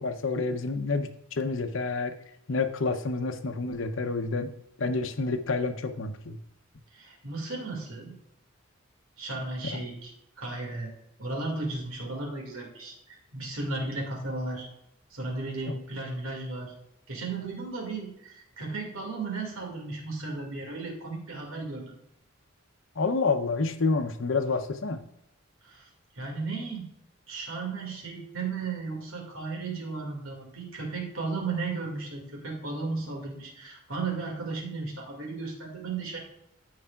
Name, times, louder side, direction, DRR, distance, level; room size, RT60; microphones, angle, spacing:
voice 1, 0.0-2.1 2.5-4.5 4.8-6.4 9.7-9.8 15.7-15.8 23.0-25.0, left 3 dB, 70° left, 8 dB, 0.7 m, -29 dB
voice 2, 6.9-8.2 9.2-10.1 10.4-10.9 11.2-14.7 15.1-16.7 17.1-21.8 25.6-25.9 26.2-26.9 27.3-36.2, right 3 dB, 85° right, 0 dB, 2.1 m, -35 dB
14.5 x 4.8 x 2.4 m, 0.81 s
head